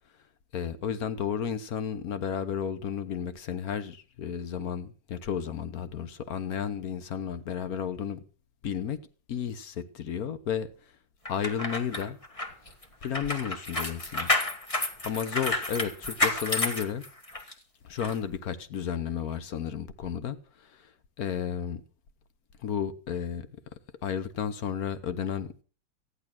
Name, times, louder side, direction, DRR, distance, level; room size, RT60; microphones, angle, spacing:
voice 1, 0.5-8.2 8.6-9.0 9.3-10.7 11.3-12.2 13.0-14.3 15.0-17.0 17.8-20.9 21.2-21.8 22.6-23.5 24.0-25.6, left 8 dB, 55° left, 1.3 m, -32 dB
sound 1, 11.3-17.5 18.0-18.1, left 1 dB, 20° left, 1.5 m, -30 dB
14.5 x 11.0 x 6.1 m
omnidirectional pair, 2.0 m